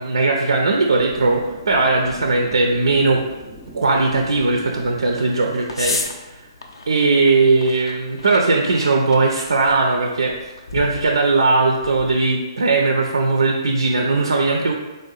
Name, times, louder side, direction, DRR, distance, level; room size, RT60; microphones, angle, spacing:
voice 1, 0.0-3.2 3.7-6.0 6.9-10.3 10.7-14.7, right 3 dB, 80° right, 2 dB, 0.4 m, -18 dB
sound 1, 0.9-6.9, left 1 dB, 15° left, 0.6 m, -43 dB
sound 2, 1.3-12.2, left 3 dB, 75° left, 0.5 m, -36 dB
3.6 x 2.6 x 4.0 m, 1.2 s
figure-of-eight pair, 135°, 3 cm